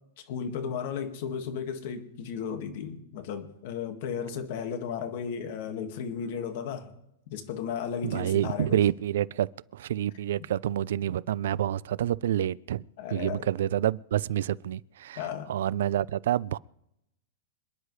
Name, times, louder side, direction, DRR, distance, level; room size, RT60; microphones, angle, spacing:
voice 1, 0.2-6.9 7.3-8.8 13.0-13.5 15.2-15.5, left 7 dB, 45° left, 1.8 m, -34 dB
voice 2, 8.0-12.8 13.1-15.2 15.5-16.6, right 11 dB, 65° right, 0.4 m, -28 dB
27.0 x 10.0 x 3.3 m
supercardioid pair, 175°, 0 cm